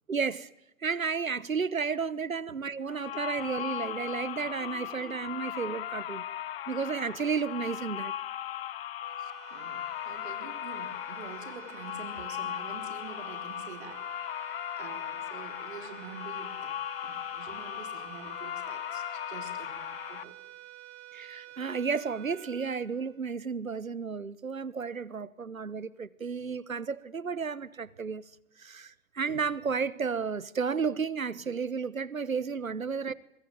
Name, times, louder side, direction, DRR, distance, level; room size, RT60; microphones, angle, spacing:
voice 1, 0.1-0.5 0.8-6.2 6.7-8.1 21.1-28.2 28.6-33.1, right 5 dB, 85° right, 1.2 m, -32 dB
sound 1, 2.9-20.2, left 11 dB, 45° left, 1.3 m, -38 dB
sound 2, 9.0-23.6, right 15 dB, 25° right, 2.3 m, -50 dB
voice 2, 9.2-14.0 14.3-16.8 17.0-20.4 32.9-33.0, right 6 dB, 55° right, 3.7 m, -47 dB
23.0 x 22.5 x 9.4 m
figure-of-eight pair, 120°, 40 cm